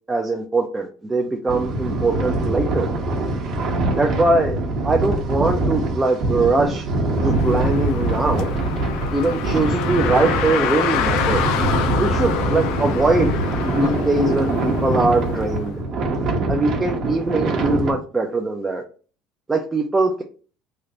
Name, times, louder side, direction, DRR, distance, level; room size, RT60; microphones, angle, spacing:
voice 1, 0.1-2.9 4.0-4.6 4.8-6.8 7.2-8.5 9.1-11.4 12.0-13.3 13.6-15.7 16.5-18.8 19.5-20.2, right 2 dB, 10° right, 0.4 m, -21 dB
sound 1, 1.5-17.9, right 2 dB, 45° right, 0.9 m, -23 dB
Car, 7.1-15.7, left 7 dB, 70° left, 0.5 m, -27 dB
3.3 x 2.4 x 3.8 m
cardioid pair, 165°, 0 cm